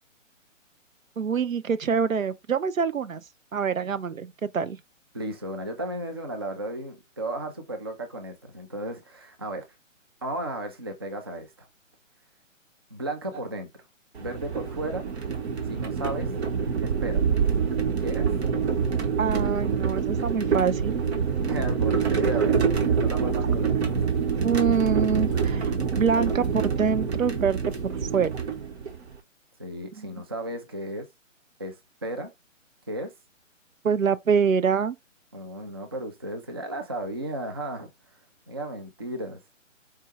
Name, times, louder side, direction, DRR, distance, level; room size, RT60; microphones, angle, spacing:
voice 1, 1.2-3.2 3.5-4.8 19.2-21.0 22.5-22.6 24.4-28.3 30.0-30.1 33.8-35.0, right 6 dB, 85° right, 0.7 m, -25 dB
voice 2, 5.1-9.7 10.2-11.7 12.9-13.7 14.2-15.1 15.6-16.3 16.8-17.2 18.0-18.3 21.5-24.0 29.6-31.1 31.6-32.3 32.9-33.1 35.3-37.9 38.5-39.4, right 1 dB, 20° right, 0.4 m, -34 dB
sound 1, 14.2-29.2, right 6 dB, 55° right, 1.2 m, -26 dB
4.5 x 2.3 x 4.6 m
figure-of-eight pair, 135°, 39 cm